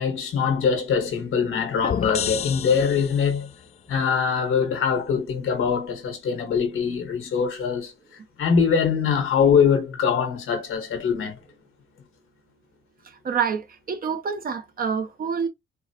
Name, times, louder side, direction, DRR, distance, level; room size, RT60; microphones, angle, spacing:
voice 1, 0.0-3.5 3.9-7.9 8.4-11.4, left 6 dB, 85° left, 1.4 m, -23 dB
sound 1, 1.8-3.5, left 7 dB, 30° left, 0.3 m, -29 dB
voice 2, 13.2-15.5, right 6 dB, 45° right, 0.7 m, -27 dB
4.5 x 2.2 x 2.8 m
cardioid pair, 125°, 21 cm